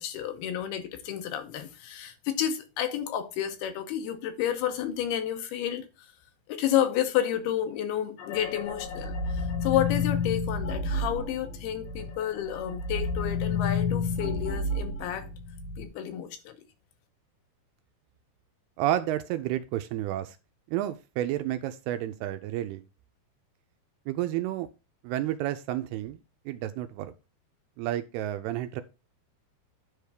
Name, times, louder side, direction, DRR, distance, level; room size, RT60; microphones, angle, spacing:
voice 1, 0.0-5.9 6.5-15.3 15.8-16.7, left 10 dB, 85° left, 3.1 m, -31 dB
sound 1, 8.2-12.1 12.4-15.8, left 4 dB, 65° left, 2.8 m, -30 dB
voice 2, 18.8-20.4 20.7-22.8 24.1-24.7 25.0-26.2 26.5-27.1 27.8-28.8, right 13 dB, 85° right, 2.6 m, -30 dB
10.0 x 3.5 x 6.5 m
omnidirectional pair, 4.6 m